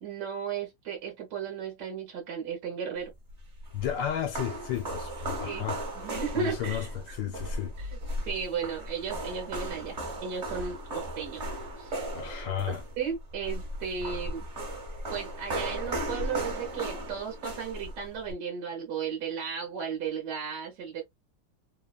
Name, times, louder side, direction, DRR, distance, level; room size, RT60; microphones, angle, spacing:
voice 1, 0.0-3.1 5.5-5.7 5.9-7.2 7.8-8.0 8.3-11.4 11.8-12.0 13.0-14.5 15.1-21.0, right 6 dB, 65° right, 1.4 m, -35 dB
sound 1, 3.3-18.3, right 1 dB, 40° right, 1.3 m, -36 dB
voice 2, 3.7-5.8 6.4-7.7 12.1-12.8, left 10 dB, 75° left, 1.4 m, -33 dB
3.4 x 2.1 x 2.3 m
omnidirectional pair, 2.1 m